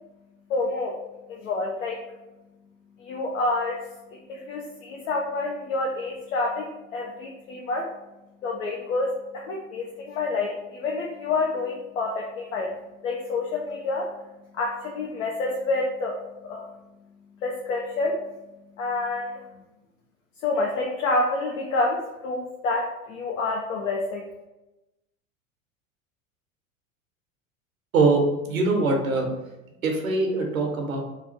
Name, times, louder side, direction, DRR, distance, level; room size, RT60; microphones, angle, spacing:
voice 1, 0.5-1.0 1.3-2.0 3.0-3.8 4.1-7.9 8.4-12.7 13.0-14.1 14.5-16.7 17.4-18.2 18.8-19.5 20.4-24.3, left 3 dB, 70° left, -1 dB, 0.7 m, -28 dB
voice 2, 28.5-29.3 29.8-31.0, right 3 dB, 80° right, 2 dB, 0.9 m, -22 dB
3.1 x 2.4 x 4.1 m, 1.0 s
figure-of-eight pair, 80°, 41 cm